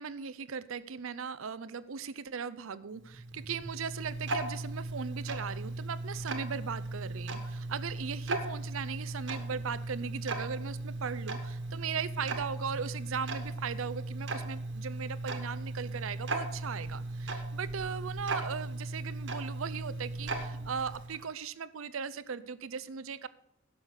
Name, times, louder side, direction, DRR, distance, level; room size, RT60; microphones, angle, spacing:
voice 1, 0.0-23.3, right 6 dB, 75° right, 17 dB, 0.6 m, -38 dB
Tick-tock, 3.0-21.3, right 2 dB, 60° right, 1.5 m, -37 dB
11.5 x 7.1 x 6.4 m, 0.79 s
head